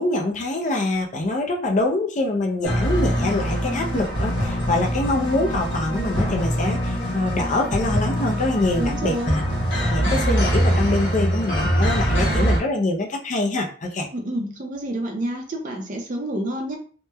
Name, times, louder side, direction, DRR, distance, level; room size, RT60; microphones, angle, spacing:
voice 1, 0.0-9.4 9.9-14.1, left 2 dB, 40° left, 2 dB, 0.4 m, -24 dB
sound 1, 2.6-12.6, equal, 70° left, 1.2 m, -23 dB
voice 2, 8.8-9.4 12.2-12.5 14.1-16.8, right 1 dB, 40° right, 3 dB, 0.5 m, -29 dB
2.9 x 2.1 x 2.2 m, 0.40 s
head